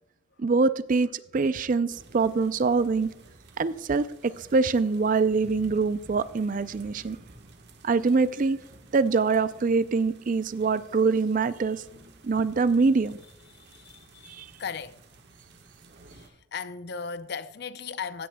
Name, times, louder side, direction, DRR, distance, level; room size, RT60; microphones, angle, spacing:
voice 1, 0.4-3.1 3.6-7.2 7.8-8.6 8.9-11.8 12.2-13.2 14.3-14.5, right 4 dB, 40° right, 0.4 m, -24 dB
sound 1, 1.9-16.3, right 2 dB, 55° right, 1.3 m, -52 dB
voice 2, 4.2-4.5 13.5-15.0 16.1-18.3, left 6 dB, 55° left, 0.6 m, -38 dB
15.5 x 10.0 x 2.2 m
head